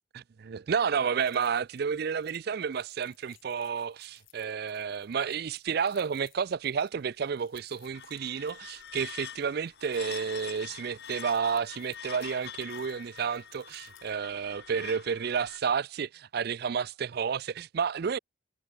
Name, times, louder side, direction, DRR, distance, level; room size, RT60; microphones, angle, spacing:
voice 1, 0.1-18.2, right 6 dB, 50° right, 0.4 m, -31 dB
sound 1, 1.2-14.1, left 14 dB, 75° left, 5.3 m, -63 dB
sound 2, 7.8-15.6, left 8 dB, 55° left, 2.2 m, -45 dB
head